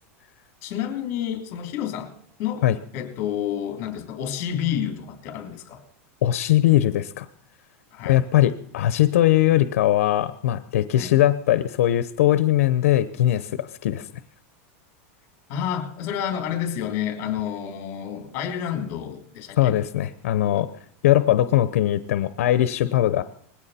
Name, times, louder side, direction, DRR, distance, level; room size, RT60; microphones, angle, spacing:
voice 1, 0.6-2.1 2.4-2.6 2.9-5.8 7.9-8.2 11.0-11.1 15.5-19.8, left 9 dB, 40° left, 4 dB, 3.3 m, -29 dB
voice 2, 6.2-7.3 8.0-14.1 19.6-20.7 21.0-23.2, left 13 dB, 85° left, 12 dB, 0.8 m, -20 dB
20.5 x 16.0 x 4.3 m, 0.63 s
supercardioid pair, 165°, 8 cm